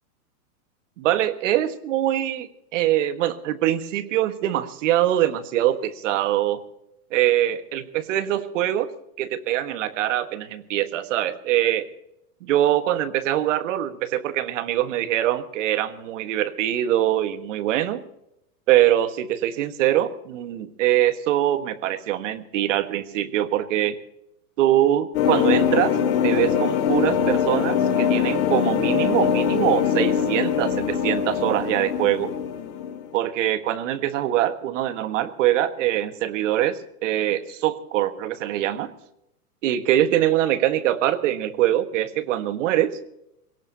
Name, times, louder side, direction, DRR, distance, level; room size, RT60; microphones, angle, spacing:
voice 1, 1.0-6.6 7.1-8.9 9.2-11.9 12.4-18.0 18.7-24.0 24.6-26.0 26.2-32.3 33.1-38.9 39.6-43.0, right 12 dB, 55° right, 10 dB, 1.6 m, -23 dB
sound 1, 25.1-33.1, left 8 dB, 45° left, 3.4 m, -22 dB
22.0 x 18.0 x 2.8 m, 0.81 s
hypercardioid pair, 150°, 45 cm